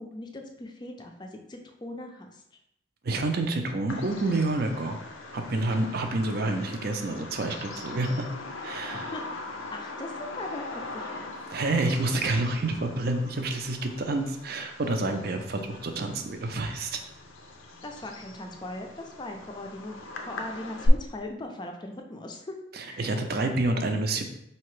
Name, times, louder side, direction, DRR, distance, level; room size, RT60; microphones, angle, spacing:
voice 1, 0.0-2.4 8.9-11.2 17.8-20.0 20.2-22.5 22.9-23.1, left 1 dB, 25° left, 4 dB, 0.4 m, -40 dB
voice 2, 3.0-5.0 5.3-8.3 8.6-9.1 11.5-17.0 22.7-24.2, right 2 dB, 55° right, 5 dB, 0.5 m, -28 dB
Bird vocalization bird call bird song, 3.9-20.9, left 2 dB, 90° left, 0.6 m, -40 dB
4.3 x 2.8 x 3.1 m, 0.78 s
head